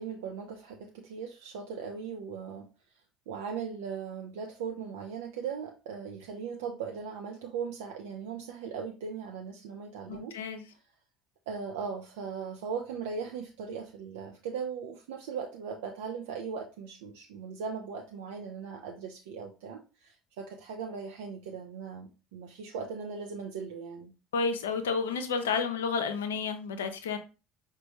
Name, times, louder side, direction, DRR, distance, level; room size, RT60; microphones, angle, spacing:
voice 1, 0.0-2.7 3.3-10.3 11.5-24.1, right 6 dB, 65° right, 2 dB, 0.4 m, -38 dB
voice 2, 10.1-10.6 24.3-27.2, left 5 dB, 70° left, 8 dB, 0.5 m, -31 dB
5.0 x 2.2 x 2.9 m, 0.32 s
figure-of-eight pair, 60°, 0 cm